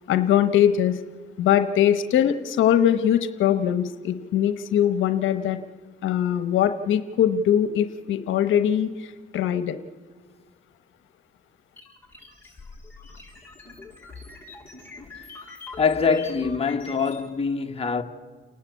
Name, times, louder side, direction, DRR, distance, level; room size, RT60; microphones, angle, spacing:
voice 1, 0.1-1.0 1.4-5.6 6.0-9.8, left 10 dB, 80° left, 1.0 m, -21 dB
sound 1, 11.8-17.2, left 4 dB, 10° left, 7.3 m, -43 dB
voice 2, 15.8-18.0, left 5 dB, 30° left, 1.6 m, -24 dB
29.5 x 11.5 x 8.3 m
cardioid pair, 90°, 20 cm